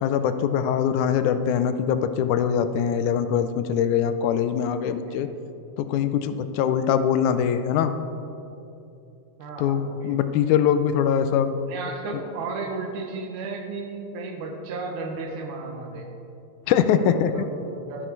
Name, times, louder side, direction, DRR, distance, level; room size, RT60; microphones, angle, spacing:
voice 1, 0.0-5.3 5.8-7.9 9.6-11.5 16.7-17.3, left 8 dB, 85° left, 10 dB, 2.0 m, -22 dB
voice 2, 4.9-5.2 9.4-10.2 11.7-16.1 16.7-18.1, right 3 dB, 85° right, 3 dB, 2.7 m, -34 dB
12.5 x 9.9 x 4.6 m, 2.8 s
omnidirectional pair, 3.4 m